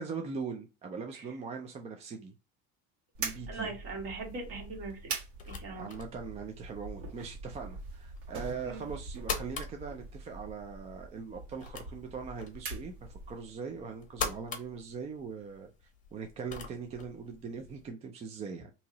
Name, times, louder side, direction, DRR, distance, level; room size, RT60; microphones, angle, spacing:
voice 1, 0.0-2.3 3.2-3.7 5.7-15.7 16.1-18.7, right 5 dB, 20° right, 0.4 m, -41 dB
sound 1, 3.1-13.5, right 4 dB, 85° right, 1.5 m, -43 dB
voice 2, 3.5-5.1 5.5-5.9 8.6-8.8, right 3 dB, 45° right, 1.6 m, -40 dB
sound 2, 4.3-17.9, left 5 dB, 25° left, 0.8 m, -44 dB
2.9 x 2.8 x 3.9 m
supercardioid pair, 135°, 31 cm